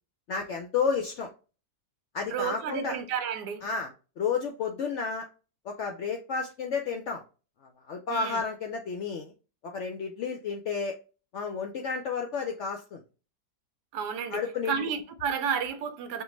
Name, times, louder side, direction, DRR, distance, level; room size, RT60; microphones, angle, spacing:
voice 1, 0.3-1.3 2.1-3.0 3.6-5.3 5.6-7.2 7.9-9.3 9.6-10.9 11.3-13.0 14.3-14.8, left 5 dB, 70° left, 0.7 m, -31 dB
voice 2, 2.3-3.6 8.1-8.4 13.9-16.2, right 7 dB, 80° right, 1.2 m, -32 dB
5.5 x 2.2 x 3.1 m
omnidirectional pair, 1.7 m